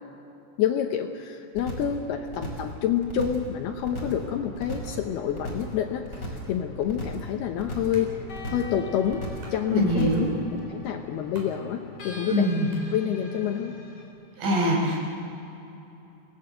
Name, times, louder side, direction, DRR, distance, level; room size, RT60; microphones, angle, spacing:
voice 1, 0.6-6.0 6.5-8.1 8.5-9.2 9.5-10.1 10.7-12.5 12.9-13.7, left 9 dB, 75° left, 4 dB, 2.6 m, -28 dB
sound 1, 1.5-2.0 2.3-2.7 3.0-3.5 3.8-4.2 4.5-5.0 5.3-5.7 6.0-6.5 6.8-7.3 7.6-8.0 8.3-8.7 9.0-9.5 9.8-10.3 10.6-10.7, equal, 15° left, 5.3 m, -36 dB
sound 2, 3.9-14.1, left 3 dB, 45° left, 6.5 m, -44 dB
sound 3, 6.1-13.5, left 1 dB, 50° right, 6.1 m, -47 dB
voice 2, 9.7-10.4 12.3-12.7 14.4-15.1, equal, 75° right, -1 dB, 7.1 m, -23 dB
26.5 x 19.0 x 7.8 m, 2.9 s
omnidirectional pair, 5.5 m